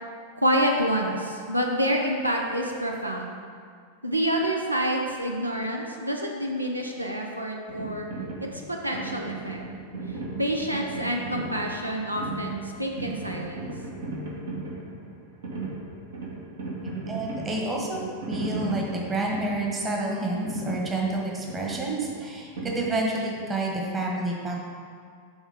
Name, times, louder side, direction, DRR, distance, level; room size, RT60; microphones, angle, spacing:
voice 1, 0.4-3.3 4.0-8.1 8.5-9.6 10.4-13.7, equal, 85° right, 1 dB, 0.5 m, -27 dB
sound 1, 7.7-23.4, right 3 dB, 65° right, 1.3 m, -36 dB
voice 2, 17.1-18.0 18.3-24.6, right 2 dB, 20° right, -1 dB, 1.3 m, -29 dB
7.9 x 3.6 x 5.1 m, 2.1 s
figure-of-eight pair, 90°, 0 cm